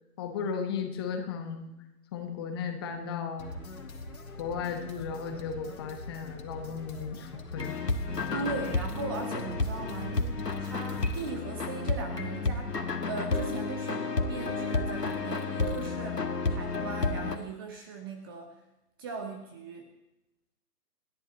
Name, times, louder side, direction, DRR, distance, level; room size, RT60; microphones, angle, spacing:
voice 1, 0.2-1.7 2.1-3.5 4.4-7.7, left 6 dB, 15° left, 5 dB, 1.1 m, -35 dB
sound 1, 3.4-11.4, left 2 dB, 65° left, 2.8 m, -44 dB
sound 2, 7.6-17.4, left 3 dB, 80° left, 2.0 m, -31 dB
voice 2, 8.3-18.5 19.0-19.9, right 4 dB, 15° right, 4 dB, 1.0 m, -39 dB
28.5 x 11.0 x 4.1 m, 0.94 s
figure-of-eight pair, 140°, 47 cm